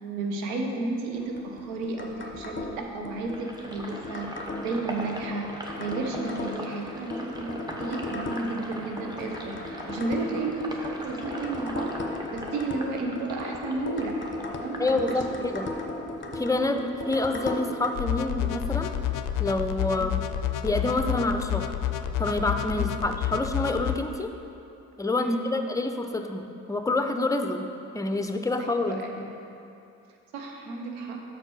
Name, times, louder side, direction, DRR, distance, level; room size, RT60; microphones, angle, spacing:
voice 1, 0.0-12.0 12.3-14.2 14.6-15.2 20.0-20.1 25.2-25.5 28.6-29.3 30.3-31.2, right 3 dB, 85° right, 2 dB, 0.9 m, -32 dB
sound 1, 1.1-18.0, left 2 dB, 30° left, 0.9 m, -37 dB
Sink (filling or washing), 3.3-15.6 15.9-17.4, equal, 10° right, 1.1 m, -40 dB
voice 2, 14.8-15.7 16.3-18.9 19.4-20.2 20.6-21.7 22.2-24.3 25.0-27.6 27.9-29.0, left 2 dB, 10° left, 5 dB, 0.6 m, -27 dB
sound 2, 18.0-23.9, left 11 dB, 60° left, 0.5 m, -29 dB
6.7 x 4.4 x 6.1 m, 2.8 s
hypercardioid pair, 50°, 37 cm